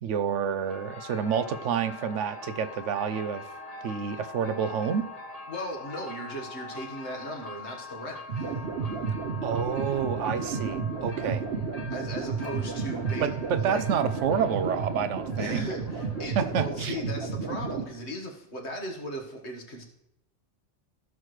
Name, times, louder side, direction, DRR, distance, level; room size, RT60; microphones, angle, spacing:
voice 1, 0.0-3.4 3.8-5.1 9.4-11.5 13.2-15.6 16.4-17.0, right 7 dB, 85° right, 12 dB, 1.0 m, -29 dB
sound 1, 0.6-17.0, left 3 dB, 35° left, 1.3 m, -43 dB
voice 2, 5.5-8.5 11.9-13.9 15.4-19.8, equal, 65° left, 1 dB, 1.9 m, -37 dB
sound 2, 8.3-17.8, right 5 dB, 60° right, 1.1 m, -32 dB
15.5 x 6.2 x 3.2 m, 0.82 s
omnidirectional pair, 1.2 m